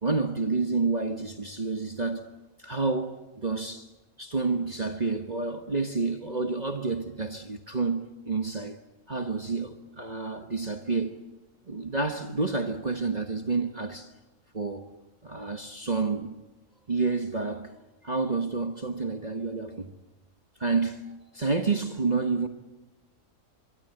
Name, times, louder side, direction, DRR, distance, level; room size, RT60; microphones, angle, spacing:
voice 1, 0.0-2.3 2.6-3.9 4.2-8.8 9.1-11.2 11.7-14.1 14.5-14.9 15.2-16.3 16.9-17.7 18.0-19.9 20.6-22.5, right 4 dB, 30° right, 1.4 m, -29 dB
25.5 x 23.0 x 7.9 m
omnidirectional pair, 1.4 m